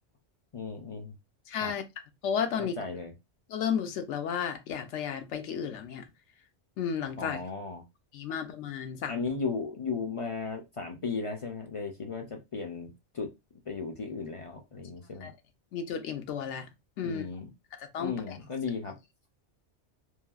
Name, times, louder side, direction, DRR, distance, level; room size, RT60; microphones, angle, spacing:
voice 1, 0.5-1.1 1.6-1.7 2.6-3.1 7.2-7.8 9.1-13.3 13.7-15.3 17.0-17.5 18.0-19.0, left 4 dB, 50° left, 0.4 m, -35 dB
voice 2, 1.5-1.8 2.2-2.8 3.5-6.1 6.8-7.4 8.1-9.2 15.2-15.3 15.7-16.7 17.0-17.2 17.8-18.4, left 7 dB, 80° left, 0.9 m, -33 dB
3.1 x 2.6 x 2.3 m
omnidirectional pair, 1.2 m